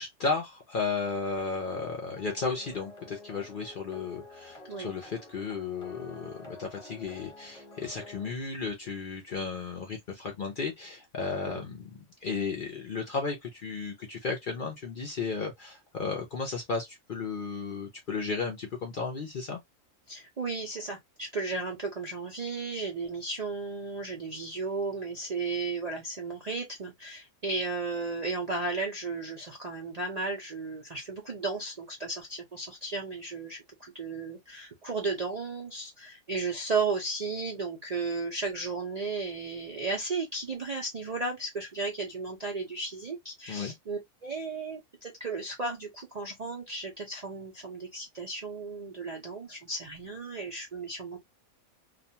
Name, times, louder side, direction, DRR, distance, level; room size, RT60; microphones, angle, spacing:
voice 1, 0.0-19.6 43.5-43.7, left 4 dB, 55° left, 0.6 m, -34 dB
sound 1, 2.2-8.3, left 2 dB, 30° left, 1.0 m, -49 dB
voice 2, 20.1-51.2, right 3 dB, 50° right, 0.5 m, -34 dB
2.4 x 2.2 x 2.7 m
omnidirectional pair, 1.4 m